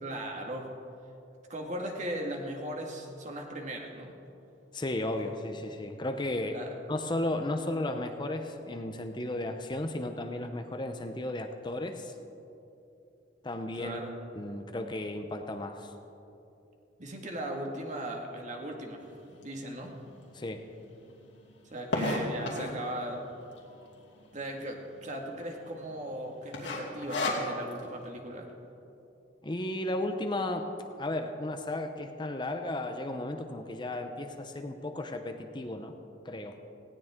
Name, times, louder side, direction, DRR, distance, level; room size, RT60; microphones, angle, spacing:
voice 1, 0.0-0.7 1.5-4.1 6.5-6.7 13.8-14.1 17.0-19.1 19.4-19.9 21.7-23.2 24.3-28.5, right 1 dB, 40° right, 1 dB, 2.0 m, -38 dB
voice 2, 4.7-6.6 6.9-12.1 13.4-14.0 14.3-15.9 20.3-20.6 29.4-30.7 31.0-35.9 36.2-36.6, left 1 dB, 25° left, 6 dB, 0.7 m, -34 dB
sound 1, 19.4-19.5 20.1-20.2 20.4-20.5 20.7-22.9 23.5-23.9 24.3-24.4 24.6-24.7 25.2-25.6 25.9-26.1 26.5-27.8, left 2 dB, 90° left, 2.7 m, -32 dB
18.5 x 17.0 x 3.7 m, 2.8 s
head